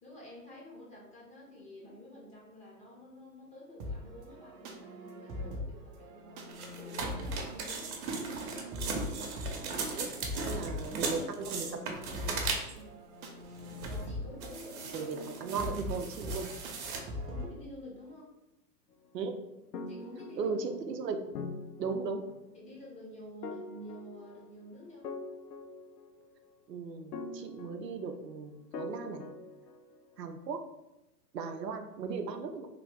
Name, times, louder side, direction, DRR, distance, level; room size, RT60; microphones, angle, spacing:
voice 1, 0.0-8.0 12.6-13.0 13.9-15.1 15.5-15.6 16.2-16.5 17.1-18.3 19.9-20.6 22.5-25.1, left 1 dB, 15° left, -4 dB, 1.0 m, -49 dB
sound 1, 3.8-17.5, left 1 dB, 30° right, 0.7 m, -42 dB
sound 2, 6.5-12.9 13.5-14.0 14.4-17.0, right 4 dB, 65° right, 1.0 m, -38 dB
voice 2, 10.5-12.0 14.9-16.5 19.1-19.4 20.4-21.3 21.8-22.2 26.7-29.2 30.2-30.6 31.3-32.7, right 4 dB, 90° right, 6 dB, 0.6 m, -37 dB
sound 3, 19.7-20.9 21.3-22.5 23.4-24.6 25.0-26.4 27.1-28.3 28.7-30.1, left 3 dB, 80° left, 0.6 m, -43 dB
3.3 x 2.4 x 3.5 m, 0.93 s
hypercardioid pair, 115°, 48 cm